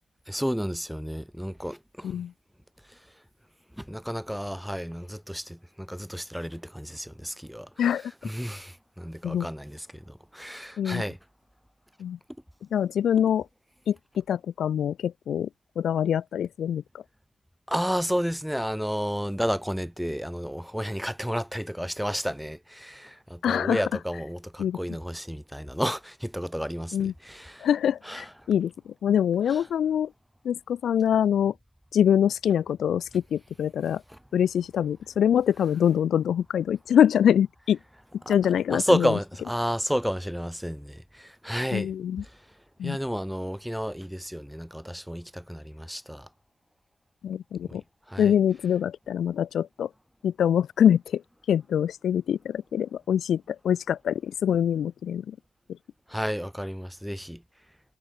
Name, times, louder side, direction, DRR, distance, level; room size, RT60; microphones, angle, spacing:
voice 1, 0.3-2.1 3.8-7.7 8.2-11.2 17.7-27.7 28.1-28.2 29.5-29.6 38.2-38.3 38.7-41.9 42.8-46.3 47.7-47.8 48.1-48.3 56.1-57.4, equal, ahead, 5.0 m, -31 dB
voice 2, 7.8-8.1 9.2-9.5 10.8-11.0 12.0-12.2 12.7-13.5 13.9-15.5 15.8-16.8 23.4-23.9 24.6-24.8 26.9-27.1 27.6-28.7 29.0-30.1 30.4-31.5 31.9-34.0 34.3-37.8 38.3-39.1 41.7-42.2 42.8-43.0 47.2-47.8 48.2-49.9 50.2-51.2 51.5-55.3, left 9 dB, 60° left, 1.0 m, -24 dB
cardioid pair, 90°, 0 cm